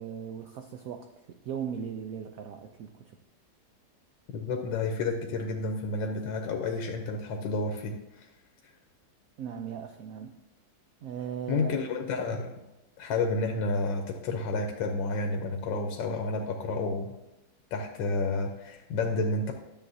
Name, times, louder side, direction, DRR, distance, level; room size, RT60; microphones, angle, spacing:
voice 1, 0.0-3.2 9.4-10.4 11.0-11.8, right 8 dB, 75° right, 6 dB, 0.8 m, -38 dB
voice 2, 4.3-8.3 8.6-8.7 11.5-12.6 13.0-17.1 17.7-19.5, left 3 dB, 80° left, 3 dB, 1.4 m, -30 dB
10.5 x 7.1 x 2.7 m, 0.99 s
omnidirectional pair, 2.0 m